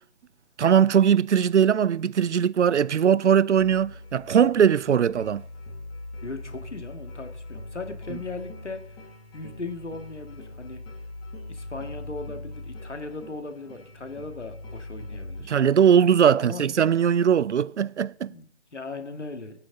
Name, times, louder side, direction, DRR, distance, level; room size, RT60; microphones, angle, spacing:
voice 1, 0.6-5.4 15.5-18.3, right 8 dB, 80° right, 0.5 m, -20 dB
sound 1, 3.6-15.4, left 2 dB, 15° left, 1.7 m, -41 dB
voice 2, 6.2-9.0 9.3-10.8 11.5-15.5 16.3-16.6 18.3-19.6, left 3 dB, 80° left, 1.9 m, -38 dB
22.0 x 8.9 x 4.0 m
figure-of-eight pair, 140°, 35 cm